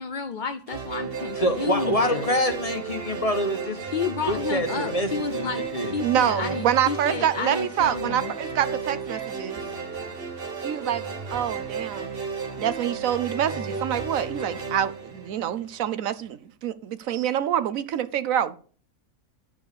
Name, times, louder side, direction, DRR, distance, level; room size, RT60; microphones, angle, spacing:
voice 1, 0.0-2.3 3.8-8.3, left 5 dB, 55° left, 0.5 m, -31 dB
sound 1, 0.7-15.9, right 5 dB, 40° right, 1.5 m, -33 dB
voice 2, 1.4-3.8 4.2-5.9, left 1 dB, 25° left, 1.1 m, -26 dB
voice 3, 6.0-9.6 10.6-11.0 11.3-12.1 12.6-18.6, right 10 dB, 70° right, 1.0 m, -26 dB
11.0 x 4.8 x 6.7 m
omnidirectional pair, 1.6 m